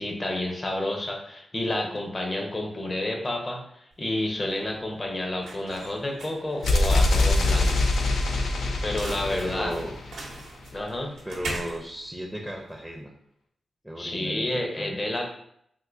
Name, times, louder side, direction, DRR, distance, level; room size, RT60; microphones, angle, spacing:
voice 1, 0.0-7.7 8.8-9.7 10.7-11.2 14.0-15.3, left 1 dB, 35° left, 2 dB, 0.7 m, -30 dB
sound 1, 3.9-13.0, right 2 dB, 85° right, 0.7 m, -41 dB
sound 2, 6.6-10.5, left 2 dB, 85° left, 0.4 m, -24 dB
voice 2, 9.3-9.9 11.2-13.1 13.8-15.1, equal, ahead, -1 dB, 0.5 m, -35 dB
3.6 x 2.6 x 2.5 m, 0.72 s
cardioid pair, 65°, 0 cm